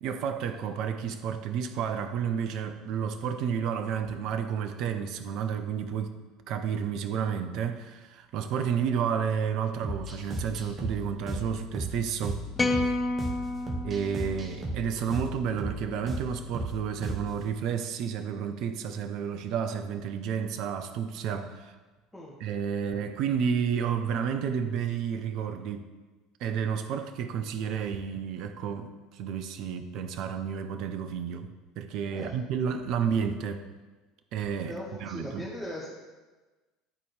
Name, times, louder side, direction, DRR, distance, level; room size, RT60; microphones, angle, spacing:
voice 1, 0.0-6.2 6.5-12.4 13.8-21.7 22.4-25.8 26.4-31.5 31.8-33.6 34.3-34.7 35.0-35.4, right 7 dB, 55° right, 0.5 m, -31 dB
sound 1, 9.8-17.4, right 1 dB, 30° right, 1.2 m, -36 dB
sound 2, 12.6-14.9, left 2 dB, 20° left, 0.7 m, -30 dB
voice 2, 32.1-32.4 34.7-35.9, left 1 dB, 5° left, 1.4 m, -39 dB
10.5 x 4.1 x 3.2 m
figure-of-eight pair, 65°, 0 cm